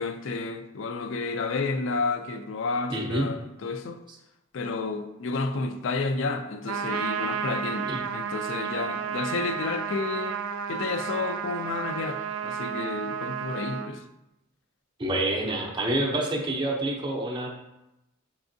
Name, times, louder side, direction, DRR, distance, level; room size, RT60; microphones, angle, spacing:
voice 1, 0.0-4.0 4.5-10.4 10.7-14.0 16.0-16.1, left 3 dB, 65° left, 8 dB, 0.4 m, -31 dB
voice 2, 2.9-3.3 7.9-8.0 15.0-17.5, right 1 dB, 25° right, -1 dB, 0.5 m, -27 dB
Trumpet, 6.7-13.9, right 7 dB, 85° right, 0.4 m, -32 dB
5.9 x 3.4 x 2.6 m, 0.92 s
head